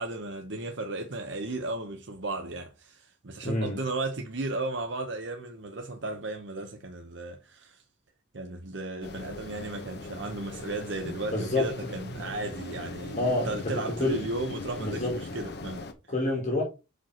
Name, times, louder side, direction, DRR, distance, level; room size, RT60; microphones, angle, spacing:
voice 1, 0.0-7.8 8.3-15.9, right 2 dB, 65° right, 0.9 m, -35 dB
voice 2, 3.4-3.8 11.3-11.7 13.2-14.2 14.8-15.2 16.1-16.6, left 2 dB, 40° left, 2.6 m, -28 dB
sound 1, 9.0-15.9, left 2 dB, 60° left, 1.1 m, -40 dB
5.8 x 5.1 x 4.3 m
head